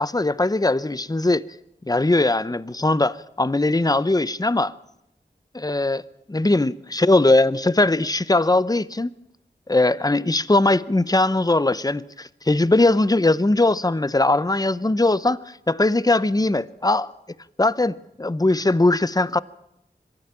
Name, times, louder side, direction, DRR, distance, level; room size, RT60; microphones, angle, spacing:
voice 1, 0.0-1.4 1.9-4.7 5.5-6.0 6.3-9.1 9.7-17.1 17.6-19.4, left 2 dB, 20° left, 0.7 m, -20 dB
23.5 x 13.0 x 8.8 m
wide cardioid pair, 55°, 19 cm